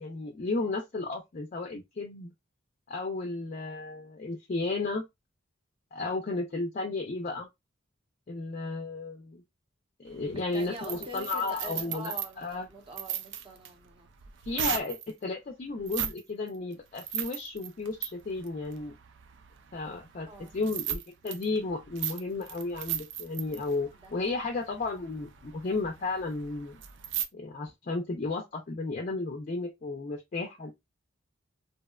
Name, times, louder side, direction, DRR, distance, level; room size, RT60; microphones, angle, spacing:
voice 1, 0.0-2.3 2.9-5.0 5.9-7.5 8.3-9.4 10.0-12.7 14.4-18.9 19.7-20.3 20.5-26.8 27.3-30.7, left 3 dB, 40° left, 0.4 m, -33 dB
sound 1, 10.1-15.1 15.8-16.2 16.5-27.3, right 10 dB, 60° right, 0.4 m, -38 dB
voice 2, 10.3-14.1 14.5-14.6 20.2-20.5 24.0-24.3, right 1 dB, 25° right, 0.7 m, -44 dB
2.7 x 2.1 x 2.3 m
head